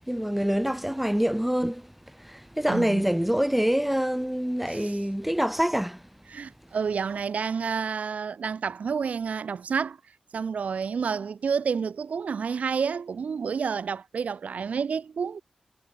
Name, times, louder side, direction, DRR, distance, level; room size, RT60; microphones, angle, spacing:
voice 1, 0.1-6.0, equal, 5° right, 0.6 m, -26 dB
voice 2, 2.7-3.1 4.7-5.0 6.3-10.0 10.3-15.4, right 6 dB, 70° right, 0.9 m, -29 dB
cardioid pair, 45°, 3 cm